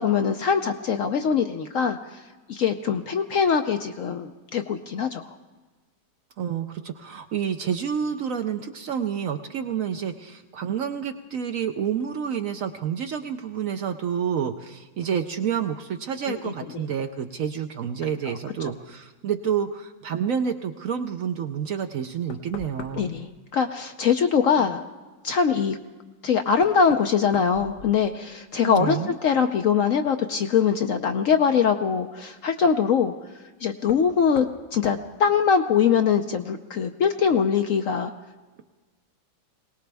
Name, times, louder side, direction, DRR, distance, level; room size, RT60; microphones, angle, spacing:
voice 1, 0.0-2.0 2.5-5.2 16.3-16.4 22.9-24.8 25.2-25.8 26.2-33.1 33.6-38.1, left 6 dB, 65° left, 6 dB, 0.8 m, -22 dB
voice 2, 6.4-23.1 24.6-24.7 28.6-29.1, right 8 dB, 65° right, 7 dB, 0.9 m, -29 dB
Knock, 22.3-23.3 25.7-25.8 26.6-28.4 28.7-29.3 31.0-31.1 33.8-34.1 34.4-34.6 34.8-35.1, left 5 dB, 80° left, 1.6 m, -41 dB
22.0 x 19.0 x 3.4 m, 1.3 s
omnidirectional pair, 1.9 m